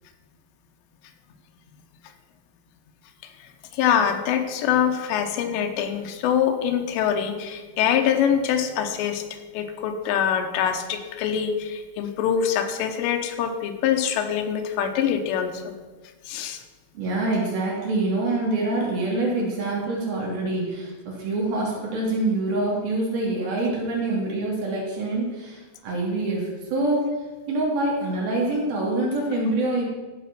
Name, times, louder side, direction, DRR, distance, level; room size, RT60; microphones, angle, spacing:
voice 1, 3.7-9.2 9.5-15.8 16.3-16.6, left 8 dB, 85° left, 5 dB, 3.1 m, -24 dB
voice 2, 16.9-27.1 27.5-29.8, right 2 dB, 60° right, -3 dB, 4.2 m, -25 dB
14.0 x 5.1 x 6.0 m, 1.3 s
omnidirectional pair, 5.1 m